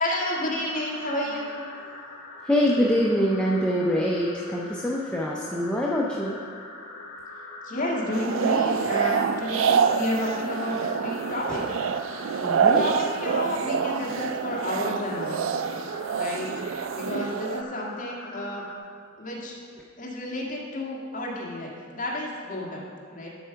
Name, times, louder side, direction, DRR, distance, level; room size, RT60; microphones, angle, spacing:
voice 1, 0.0-1.6 7.6-11.6 12.6-15.5 16.1-16.5 16.9-18.6 19.2-19.6 20.0-23.3, left 1 dB, 40° left, -4 dB, 1.7 m, -31 dB
sound 1, 0.7-18.8, left 2 dB, 80° left, 1.4 m, -43 dB
voice 2, 2.4-6.4 12.4-12.9, equal, 5° left, -3 dB, 0.6 m, -24 dB
sound 2, 8.1-17.6, right 6 dB, 65° right, 0.3 m, -26 dB
12.0 x 4.8 x 5.7 m, 2.1 s
head